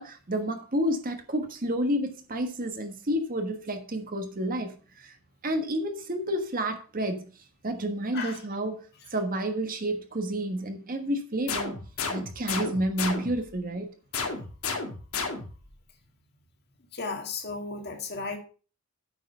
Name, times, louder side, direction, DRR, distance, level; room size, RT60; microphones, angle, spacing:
voice 1, 0.0-5.1 5.4-7.2 7.6-8.8 9.1-13.9, right 1 dB, 40° right, 1.3 m, -30 dB
sound 1, 11.5-13.5 14.1-15.7, left 4 dB, 70° left, 2.2 m, -33 dB
voice 2, 16.9-18.4, left 4 dB, 45° left, 2.0 m, -34 dB
9.1 x 6.5 x 5.5 m
head